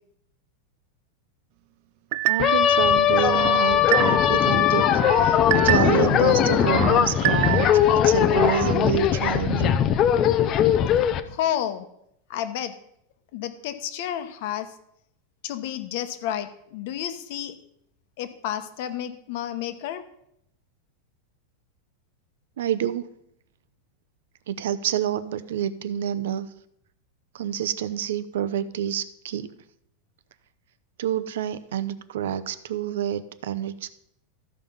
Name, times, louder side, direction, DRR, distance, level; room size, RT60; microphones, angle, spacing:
sound 1, 2.1-2.7 3.2-4.4 4.8-6.1 6.5-7.9 8.3-8.8, right 15 dB, 45° right, 0.3 m, -27 dB
voice 1, 2.3-9.8 22.6-23.1 24.5-26.5 27.3-29.5 31.0-33.9, right 10 dB, 80° right, 13 dB, 0.7 m, -28 dB
sound 2, 2.4-11.2, left 9 dB, 25° left, 0.5 m, -20 dB
voice 2, 11.3-11.8 12.3-12.7 13.3-14.7 15.4-17.5 18.2-20.0, left 10 dB, 50° left, 10 dB, 1.0 m, -30 dB
14.0 x 5.3 x 5.5 m, 0.75 s
supercardioid pair, 165°, 0 cm